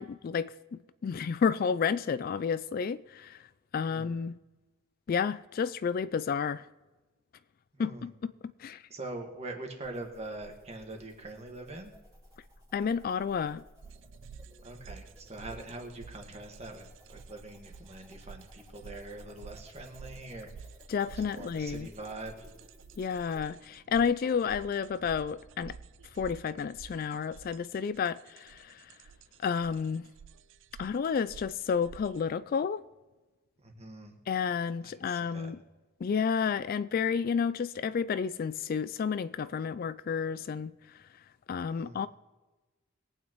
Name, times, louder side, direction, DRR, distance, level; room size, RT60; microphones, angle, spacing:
voice 1, 0.0-3.4 3.7-4.4 5.1-6.7 7.8-8.1 8.6-8.8 12.7-13.6 20.9-21.9 23.0-25.8 26.2-28.9 29.4-30.1 30.8-32.8 34.3-35.6 36.0-40.7 41.5-42.1, left 6 dB, 45° left, 0.3 m, -31 dB
voice 2, 7.7-8.1 8.9-11.9 14.6-20.6 21.2-22.5 33.6-34.2 34.8-35.5 41.7-42.0, right 2 dB, 30° right, 1.7 m, -43 dB
sound 1, 9.8-23.4, equal, 15° right, 2.9 m, -55 dB
sound 2, 13.8-32.2, right 5 dB, 65° right, 0.4 m, -51 dB
22.0 x 8.9 x 3.1 m
head